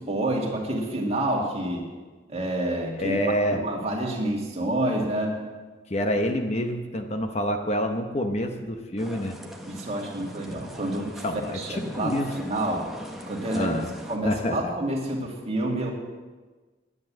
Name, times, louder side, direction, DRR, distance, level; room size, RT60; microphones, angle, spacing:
voice 1, 0.0-1.8 2.3-3.2 3.5-5.4 9.7-11.2 11.5-12.9 13.3-13.7 14.1-15.9, right 1 dB, 35° right, -1 dB, 2.2 m, -28 dB
voice 2, 3.0-3.6 5.9-9.4 11.2-12.5 13.5-13.9 14.2-14.7, equal, 35° left, 5 dB, 0.9 m, -27 dB
sound 1, 9.0-14.2, equal, ahead, 1.2 m, -40 dB
10.5 x 9.7 x 7.4 m, 1.3 s
head